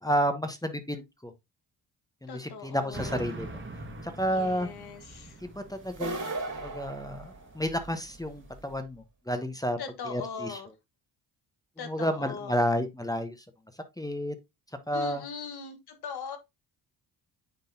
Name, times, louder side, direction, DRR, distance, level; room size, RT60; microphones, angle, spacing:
voice 1, 0.0-1.3 2.2-3.5 4.0-4.7 5.4-9.8 10.1-10.6 11.8-13.4 14.0-14.3 14.9-15.2, equal, 10° left, 1.0 m, -31 dB
voice 2, 2.3-3.2 4.3-5.4 9.8-10.7 11.8-12.6 14.9-16.4, left 6 dB, 55° left, 1.5 m, -40 dB
sound 1, 2.9-8.7, right 2 dB, 25° right, 1.7 m, -44 dB
sound 2, 5.9-7.9, right 2 dB, 40° right, 2.3 m, -36 dB
9.2 x 3.8 x 2.7 m
hypercardioid pair, 50°, 46 cm